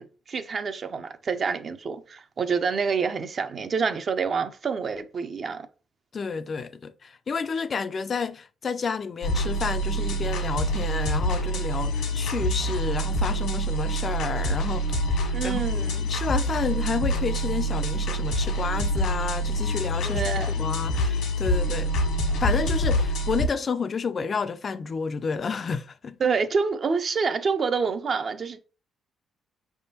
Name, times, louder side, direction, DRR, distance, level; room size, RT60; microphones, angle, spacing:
voice 1, 0.0-5.7 15.3-16.0 20.0-20.6 26.2-28.6, right 5 dB, 45° right, 0.5 m, -27 dB
voice 2, 6.1-15.6 16.0-21.9 22.4-26.2, left 5 dB, 45° left, 0.3 m, -30 dB
sound 1, 9.2-23.5, equal, 90° left, 1.2 m, -26 dB
5.2 x 3.4 x 2.8 m
cardioid pair, 90°, 0 cm